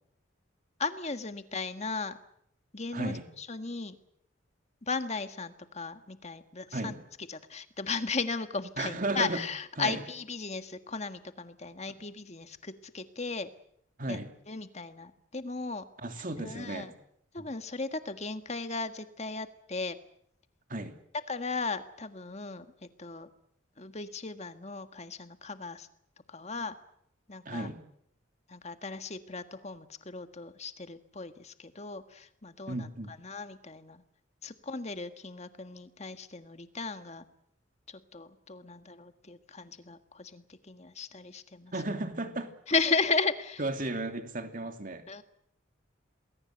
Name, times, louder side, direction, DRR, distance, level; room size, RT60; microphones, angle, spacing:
voice 1, 0.8-2.2 2.7-4.0 4.8-7.0 7.3-13.5 14.1-14.2 14.5-15.9 16.4-16.9 17.3-20.0 21.3-23.3 23.8-25.9 26.3-26.8 27.3-27.7 28.5-34.0 34.4-37.2 37.9-41.7 42.7-43.6 45.1-45.2, left 4 dB, 35° left, 9 dB, 1.6 m, -36 dB
voice 2, 2.9-3.3 6.7-7.0 8.8-9.4 9.8-10.0 14.0-14.3 16.0-16.9 17.4-17.5 20.7-21.0 27.4-27.8 32.7-33.1 41.7-42.5 43.6-45.0, right 2 dB, 45° right, 6 dB, 2.9 m, -34 dB
28.0 x 20.5 x 8.0 m, 0.71 s
head